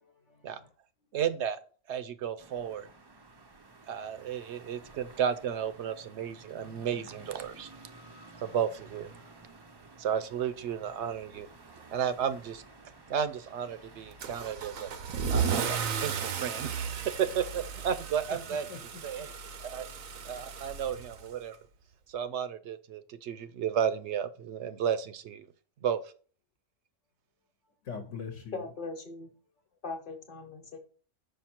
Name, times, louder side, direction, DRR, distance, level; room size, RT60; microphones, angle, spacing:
voice 1, 0.0-0.7 16.7-17.1 18.5-18.8 27.8-28.6, left 6 dB, 65° left, 1.2 m, -43 dB
voice 2, 1.1-1.6 1.9-2.9 3.9-7.7 8.4-9.1 10.0-11.5 11.9-12.6 13.1-14.9 15.3-18.7 19.0-19.3 19.6-19.8 20.2-21.5 22.1-25.5 25.8-26.0, right 8 dB, 65° right, 0.8 m, -33 dB
sound 1, 2.4-15.8, right 2 dB, 35° right, 0.3 m, -53 dB
Car / Engine starting / Accelerating revving vroom, 14.2-21.5, right 6 dB, 85° right, 1.1 m, -35 dB
voice 3, 28.5-29.3 29.8-30.8, left 3 dB, 40° left, 1.2 m, -39 dB
5.7 x 5.3 x 4.4 m
omnidirectional pair, 1.4 m